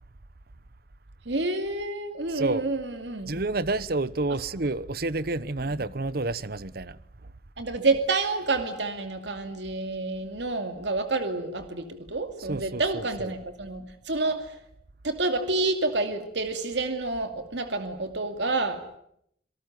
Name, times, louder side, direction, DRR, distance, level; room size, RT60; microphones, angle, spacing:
voice 1, 1.3-3.3 4.3-4.4 7.6-14.5 15.0-18.8, right 3 dB, 75° right, 2.6 m, -28 dB
voice 2, 2.3-2.6 3.3-7.0 12.5-13.3, right 2 dB, 55° right, 1.0 m, -29 dB
28.0 x 18.5 x 9.4 m
head